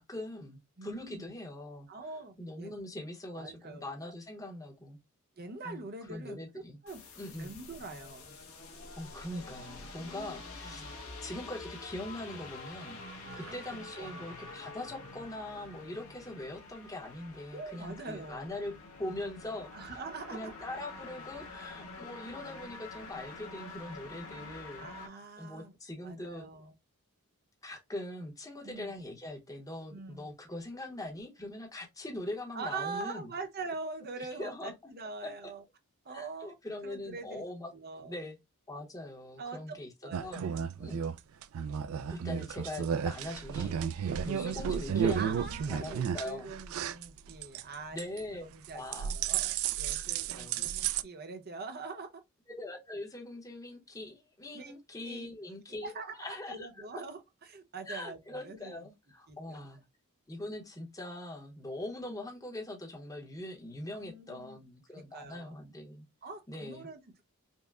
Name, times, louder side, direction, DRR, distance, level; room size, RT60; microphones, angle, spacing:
voice 1, 0.1-1.9 2.4-5.0 5.6-6.8 7.2-7.5 9.0-10.8 11.2-13.0 13.3-18.7 19.0-19.9 20.3-24.9 25.4-26.4 27.6-33.3 34.2-34.9 35.2-35.3 36.1-37.7 38.0-38.4 38.7-40.5 40.8-41.0 42.1-46.5 47.9-48.5 48.7-49.2 49.9-50.0 50.3-50.7 52.5-56.8 57.9-59.8 60.3-66.1 66.5-66.9, left 1 dB, 15° left, 0.8 m, -42 dB
voice 2, 0.8-1.3 1.9-2.7 3.3-3.9 5.4-7.0 7.4-8.3 10.6-10.9 13.4-14.3 17.5-18.6 19.7-20.5 24.7-25.8 26.0-26.7 28.6-28.9 29.9-30.3 32.5-35.6 36.0-36.5 36.8-37.4 37.7-38.2 39.4-39.8 40.0-40.7 45.1-48.8 49.1-52.2 54.5-54.7 55.0-55.3 55.8-58.9 59.3-59.6 63.9-64.6 64.9-65.6 66.2-67.2, right 4 dB, 45° right, 0.8 m, -44 dB
sound 1, 6.9-25.1, left 3 dB, 65° left, 1.0 m, -47 dB
sound 2, 40.1-47.6 48.0-48.3 48.6-51.0, right 8 dB, 65° right, 0.3 m, -33 dB
5.3 x 2.1 x 2.3 m
head